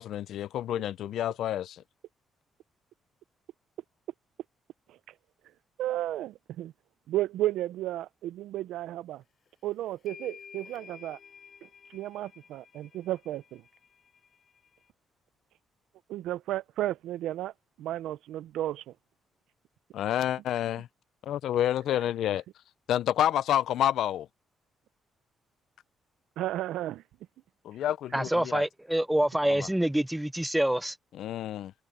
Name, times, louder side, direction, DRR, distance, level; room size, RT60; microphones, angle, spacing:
voice 1, 0.0-1.8 19.9-20.9 21.2-22.4 22.9-24.3 27.6-28.6 29.5-29.7 31.1-31.7, left 11 dB, 75° left, 0.6 m, -29 dB
voice 2, 5.8-6.7 7.1-9.2 9.6-11.2 11.9-13.6 16.1-17.5 17.8-18.9 26.4-27.0, right 14 dB, 85° right, 0.5 m, -33 dB
sound 1, 9.5-9.6 10.1-14.9, left 7 dB, 50° left, 7.9 m, -52 dB
voice 3, 28.1-30.9, right 1 dB, 5° right, 0.3 m, -26 dB
cardioid pair, 90°, 0 cm